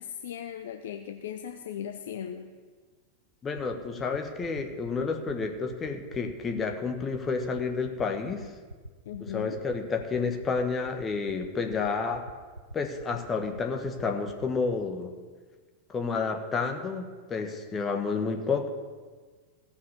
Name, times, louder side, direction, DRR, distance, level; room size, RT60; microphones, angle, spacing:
voice 1, 0.0-2.5 9.0-9.6, left 9 dB, 60° left, 6 dB, 0.6 m, -38 dB
voice 2, 3.4-8.5 9.2-12.2 12.7-15.1 15.9-18.7, left 4 dB, 20° left, 4 dB, 1.3 m, -30 dB
sound 1, 3.5-14.9, right 1 dB, 85° right, 0.6 m, -43 dB
16.0 x 5.7 x 6.6 m, 1.5 s
figure-of-eight pair, 90°, 0 cm